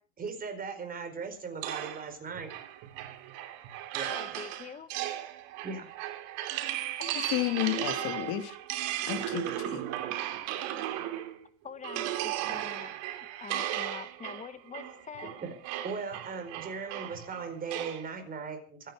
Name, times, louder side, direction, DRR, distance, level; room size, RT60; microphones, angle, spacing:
voice 1, 0.2-2.5 3.9-4.1 5.6-5.9 15.2-15.5 15.8-18.9, right 5 dB, 25° right, 4.8 m, -38 dB
sound 1, 1.6-11.4 11.8-18.1, right 13 dB, 65° right, 2.8 m, -36 dB
voice 2, 4.1-4.9 7.0-8.2 11.6-15.3, left 6 dB, 20° left, 1.4 m, -45 dB
voice 3, 7.1-9.9, left 14 dB, 60° left, 2.7 m, -33 dB
26.0 x 10.5 x 5.0 m
cardioid pair, 145°, 35 cm